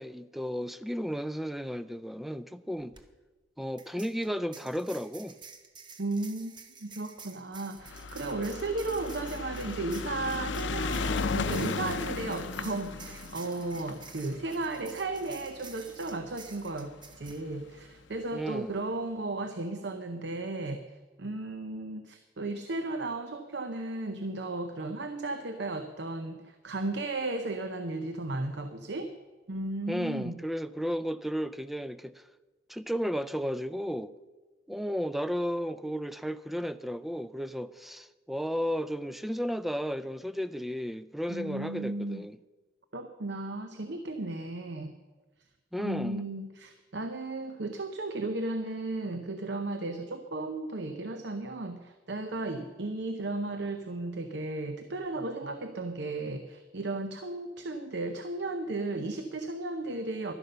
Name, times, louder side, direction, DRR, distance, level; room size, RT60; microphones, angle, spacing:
voice 1, 0.0-2.9 3.6-5.4 18.3-18.7 29.9-32.2 32.7-34.1 34.7-42.4 45.7-46.2, equal, ahead, 0.3 m, -33 dB
sound 1, 2.9-3.0 3.8-17.4, right 5 dB, 25° right, 0.9 m, -51 dB
voice 2, 6.0-6.5 6.8-20.8 21.2-29.1 29.5-30.4 41.3-42.3 42.9-45.0 45.8-60.3, right 2 dB, 65° right, 0.7 m, -35 dB
sound 2, 7.8-16.3 17.1-17.2 17.4-17.5 17.8-17.9, left 4 dB, 75° left, 0.6 m, -35 dB
12.0 x 11.0 x 6.7 m
head